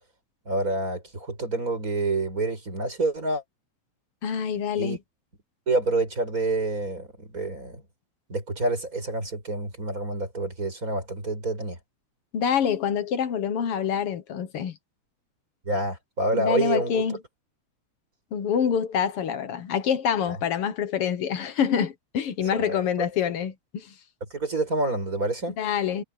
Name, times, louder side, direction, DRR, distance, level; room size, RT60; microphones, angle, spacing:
voice 1, 0.5-3.4 4.7-5.0 5.7-7.8 8.3-11.8 15.7-17.1 20.3-20.4 22.5-22.8 24.3-25.5, right 2 dB, 25° right, 6.5 m, -27 dB
voice 2, 4.2-5.0 12.3-14.7 16.3-17.2 18.3-23.9 25.6-26.0, left 8 dB, 60° left, 1.9 m, -26 dB
omnidirectional pair, 3.3 m